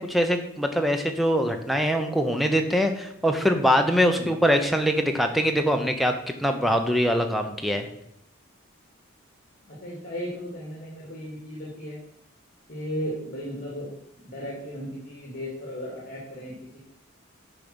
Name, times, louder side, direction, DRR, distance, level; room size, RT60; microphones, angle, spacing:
voice 1, 0.0-7.9, equal, ahead, 5 dB, 0.7 m, -23 dB
voice 2, 9.7-12.0 12.7-13.9 14.2-16.8, equal, 45° left, -4 dB, 2.4 m, -35 dB
8.9 x 5.2 x 6.2 m, 0.75 s
head